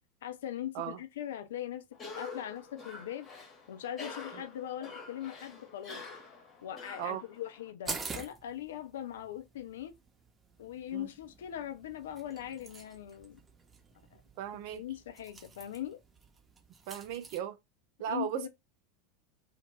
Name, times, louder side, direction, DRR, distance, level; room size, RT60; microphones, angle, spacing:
voice 1, 0.2-3.3 3.7-6.0 6.6-9.9 10.6-13.4 14.1-14.2 14.7-16.0 18.1-18.5, left 11 dB, 65° left, 0.4 m, -40 dB
Cough, 1.9-7.7, left 4 dB, 25° left, 1.0 m, -47 dB
sound 1, 7.9-17.4, right 4 dB, 20° right, 0.8 m, -47 dB
voice 2, 14.4-14.8 16.9-17.6 18.0-18.5, right 10 dB, 50° right, 0.4 m, -36 dB
2.5 x 2.1 x 3.2 m
figure-of-eight pair, 80°, 0 cm